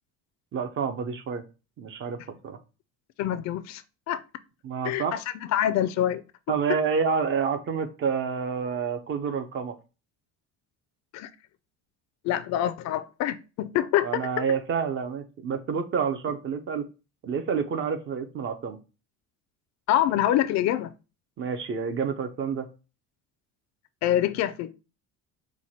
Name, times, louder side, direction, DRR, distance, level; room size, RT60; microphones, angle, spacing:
voice 1, 0.5-1.4 1.8-2.6 4.6-5.2 6.5-9.8 14.0-16.9 17.2-18.8 21.4-22.7, right 6 dB, 40° right, 0.6 m, -28 dB
voice 2, 3.2-4.2 4.8-5.2 5.5-6.2 11.1-11.3 12.2-14.4 19.9-20.9 24.0-24.7, left 12 dB, 60° left, 0.4 m, -26 dB
4.6 x 2.2 x 4.1 m
cardioid pair, 140°, 31 cm